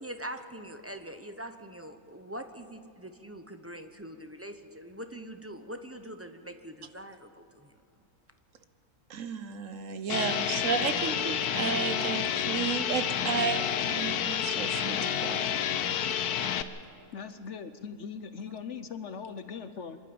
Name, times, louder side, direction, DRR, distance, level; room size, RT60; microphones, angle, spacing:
voice 1, 0.0-7.7, right 1 dB, 10° right, 7 dB, 0.7 m, -43 dB
voice 2, 9.1-15.4, right 6 dB, 60° right, 10 dB, 1.2 m, -33 dB
sound 1, 10.1-16.6, left 9 dB, 85° left, 1.3 m, -29 dB
voice 3, 17.1-20.0, left 6 dB, 55° left, 11 dB, 1.0 m, -40 dB
25.5 x 11.5 x 8.7 m, 2.7 s
omnidirectional pair, 1.6 m